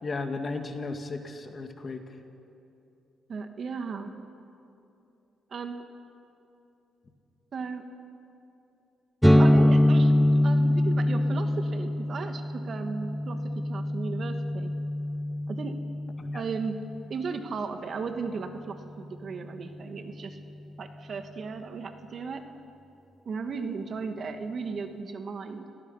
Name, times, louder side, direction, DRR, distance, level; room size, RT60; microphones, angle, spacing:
voice 1, 0.0-2.0 16.2-16.4, left 3 dB, 35° left, 5 dB, 2.1 m, -34 dB
voice 2, 3.3-4.2 5.5-5.8 7.5-7.8 9.4-13.4 13.7-14.7 15.5-15.8 16.3-16.8 17.1-20.4 20.8-22.4 23.2-25.7, right 5 dB, 50° right, 6 dB, 1.7 m, -36 dB
sound 1, 9.2-16.8, left 1 dB, ahead, 1.0 m, -24 dB
29.5 x 18.0 x 5.6 m, 2.8 s
cardioid pair, 90°, 0 cm